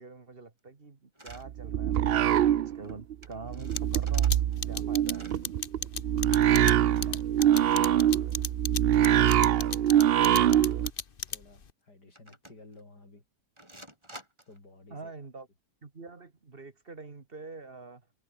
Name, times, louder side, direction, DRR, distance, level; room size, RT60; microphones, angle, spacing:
voice 1, 0.0-4.4 4.7-5.4 14.9-15.5 15.8-18.1, right 3 dB, 35° right, 1.9 m, -45 dB
sound 1, 1.1-1.5 1.9-2.1 2.4-2.5 2.7-2.9 3.2-4.8 5.0-5.5 6.8-7.8 8.3-8.4 9.2-9.6 9.9-10.0 10.4-10.7 11.3-11.4 12.2-12.8 13.6-14.6, right 1 dB, 15° right, 5.8 m, -51 dB
sound 2, 1.3-3.1 3.4-10.9, right 11 dB, 90° right, 0.5 m, -24 dB
sound 3, 3.8-11.7, left 6 dB, 35° left, 1.2 m, -34 dB
voice 2, 6.5-8.3 8.7-10.9 11.3-13.2 14.5-15.1, left 2 dB, 80° left, 6.5 m, -55 dB
omnidirectional pair, 1.7 m